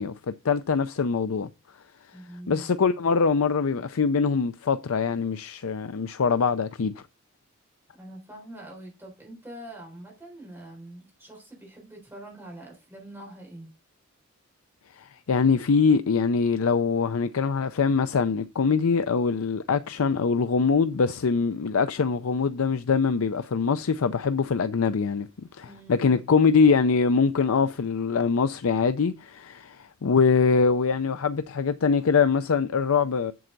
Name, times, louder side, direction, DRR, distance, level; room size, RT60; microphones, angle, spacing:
voice 1, 0.0-1.5 2.5-7.0 14.9-33.3, left 5 dB, 75° left, 0.5 m, -23 dB
voice 2, 2.1-2.7 8.0-13.7 25.6-26.2, right 1 dB, 10° right, 4.0 m, -44 dB
7.8 x 7.7 x 3.9 m
head